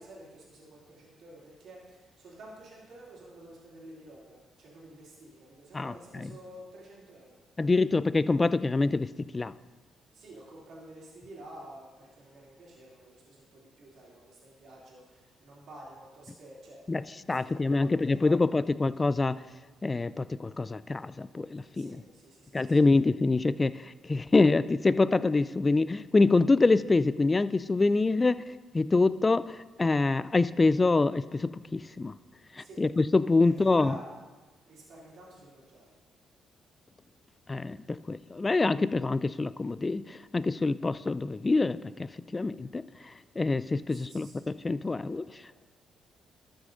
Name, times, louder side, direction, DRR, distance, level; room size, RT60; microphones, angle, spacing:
voice 1, 0.0-7.4 10.1-16.8 17.1-18.4 21.7-22.8 32.6-32.8 33.4-34.0 34.6-35.9 43.9-44.4 45.1-45.6, right 1 dB, 65° right, -6 dB, 2.9 m, -50 dB
voice 2, 5.7-6.3 7.6-9.5 16.9-17.0 17.3-19.4 19.8-22.0 22.5-28.4 28.7-32.1 32.5-33.9 37.5-45.6, left 3 dB, 25° left, 16 dB, 0.3 m, -26 dB
13.0 x 6.4 x 3.9 m, 1.3 s
cardioid pair, 90°, 0 cm